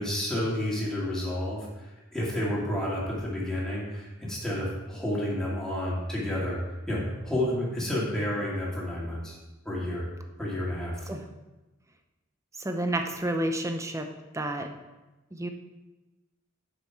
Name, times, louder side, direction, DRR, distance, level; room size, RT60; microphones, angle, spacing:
voice 1, 0.0-1.9 2.1-6.6 6.9-9.4 9.6-10.1 10.4-11.1, left 1 dB, 5° left, -6 dB, 2.1 m, -30 dB
voice 2, 12.6-14.1 14.3-14.7 15.3-15.5, right 1 dB, 15° right, 5 dB, 0.6 m, -30 dB
6.8 x 6.5 x 4.5 m, 1.1 s
head